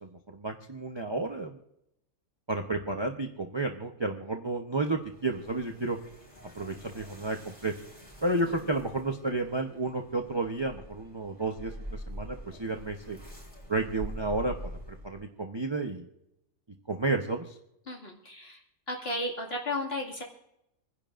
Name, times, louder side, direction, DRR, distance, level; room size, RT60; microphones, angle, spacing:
voice 1, 0.0-1.6 2.5-6.0 6.6-7.7 8.2-13.2 13.7-14.6 15.0-16.1 16.9-17.5, right 2 dB, 20° right, 3 dB, 0.7 m, -31 dB
sound 1, 4.9-15.3, equal, 5° left, 4.7 m, -45 dB
voice 2, 17.9-18.6 18.9-20.2, left 1 dB, 40° left, -1 dB, 2.5 m, -34 dB
28.0 x 10.5 x 2.5 m, 0.81 s
omnidirectional pair, 1.6 m